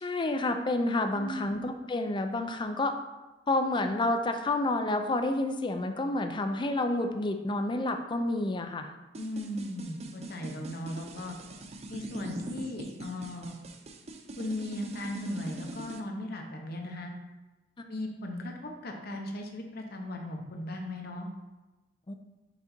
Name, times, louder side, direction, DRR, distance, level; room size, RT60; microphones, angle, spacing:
voice 1, 0.0-2.9 3.5-8.9 17.8-17.9 22.1-22.2, left 2 dB, 25° left, 6 dB, 0.5 m, -29 dB
voice 2, 1.0-1.6 9.2-11.4 11.9-13.5 14.4-17.1 17.9-21.3, left 1 dB, 55° left, 2 dB, 1.0 m, -37 dB
sound 1, 9.1-16.0, right 2 dB, 35° right, 0.5 m, -42 dB
6.0 x 3.9 x 4.4 m, 1.1 s
head